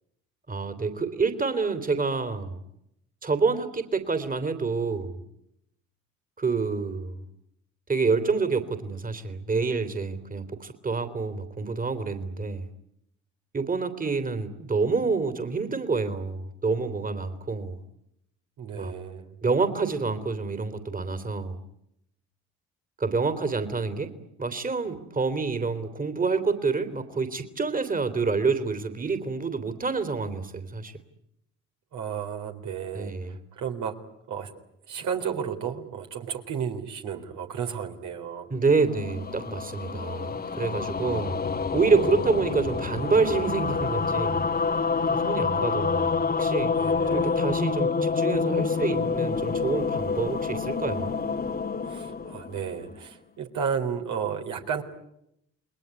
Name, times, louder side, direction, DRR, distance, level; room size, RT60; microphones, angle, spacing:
voice 1, 0.5-2.6 3.2-5.2 6.4-7.2 7.9-12.7 13.5-17.8 18.7-18.9 19.4-21.6 23.0-24.1 24.4-30.9 32.9-33.4 38.5-41.4 41.7-44.4 45.1-46.7 47.1-51.2, right 4 dB, 25° right, 9 dB, 3.2 m, -27 dB
voice 2, 18.6-19.3 31.9-33.1 33.5-33.9 34.3-34.5 34.9-38.5 46.8-47.4 51.8-54.8, right 7 dB, 70° right, 3 dB, 3.8 m, -32 dB
sound 1, 38.7-53.1, left 5 dB, 30° left, 1.6 m, -28 dB
29.0 x 20.5 x 9.7 m, 0.79 s
supercardioid pair, 65°, 31 cm